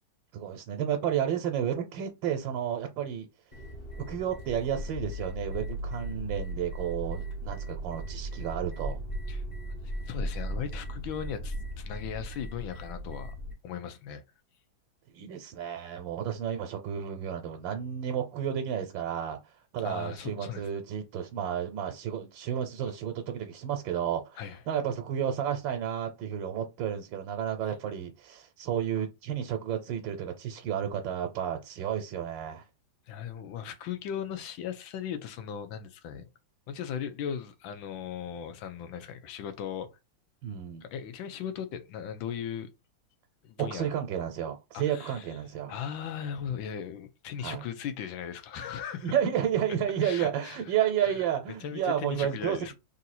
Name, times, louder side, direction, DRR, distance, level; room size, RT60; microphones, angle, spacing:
voice 1, 0.3-3.3 4.0-9.0 15.1-32.6 40.4-40.8 43.6-45.8 47.4-47.6 49.0-52.7, right 9 dB, 80° right, 1.4 m, -32 dB
sound 1, 3.5-13.5, right 1 dB, 30° left, 0.9 m, -37 dB
voice 2, 9.8-13.4 13.6-14.2 19.8-20.7 24.4-24.6 33.1-36.3 36.7-39.9 40.8-42.7 43.4-43.9 44.7-45.3 45.7-49.1 50.0-50.6 51.0-51.2 51.6-52.7, left 8 dB, 90° left, 1.5 m, -37 dB
3.7 x 2.7 x 4.1 m
omnidirectional pair, 2.1 m